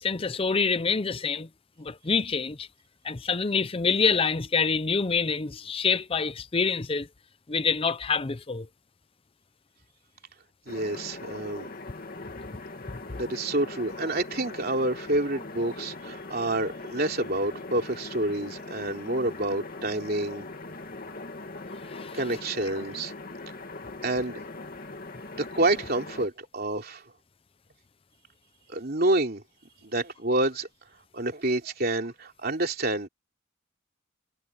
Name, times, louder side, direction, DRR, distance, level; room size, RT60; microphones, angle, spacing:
voice 1, 0.0-1.5 1.8-2.7 3.0-7.1 7.5-8.7 21.8-22.2, left 5 dB, 30° left, 0.6 m, -26 dB
sound 1, 10.7-26.3, left 2 dB, 45° left, 2.4 m, -41 dB
voice 2, 10.7-11.7 13.2-20.4 22.1-23.1 24.0-24.4 25.3-27.0 28.7-29.4 29.8-30.7 31.1-33.1, right 2 dB, 50° right, 3.2 m, -28 dB
head